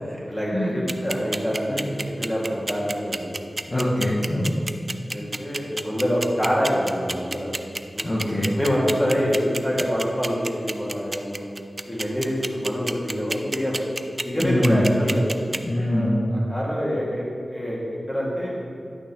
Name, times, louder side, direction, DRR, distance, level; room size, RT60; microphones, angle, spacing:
voice 1, 0.0-3.4 4.3-4.5 5.1-7.5 7.9-8.1 8.5-11.5 11.9-13.8 14.2-15.2 15.9-17.8 18.1-18.6, equal, 15° left, -5 dB, 2.0 m, -26 dB
sound 1, 0.9-15.6, right 2 dB, 35° right, 0.3 m, -28 dB
voice 2, 3.7-4.5 8.0-8.5 14.4-14.8 15.6-16.2, left 1 dB, 35° left, -7 dB, 1.1 m, -23 dB
10.5 x 6.1 x 3.0 m, 2.5 s
wide cardioid pair, 70°, 0 cm